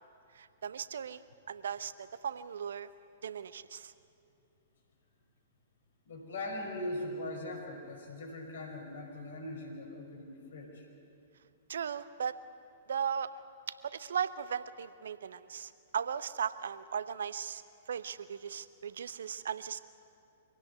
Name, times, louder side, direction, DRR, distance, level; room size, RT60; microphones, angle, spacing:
voice 1, 0.3-2.9 3.2-3.9 11.7-12.3 12.9-13.3 13.8-17.6 17.9-19.8, right 7 dB, 70° right, 15 dB, 0.9 m, -37 dB
voice 2, 6.1-10.8, left 1 dB, 65° left, 3 dB, 5.4 m, -40 dB
24.5 x 16.5 x 9.6 m, 2.5 s
figure-of-eight pair, 110°, 0 cm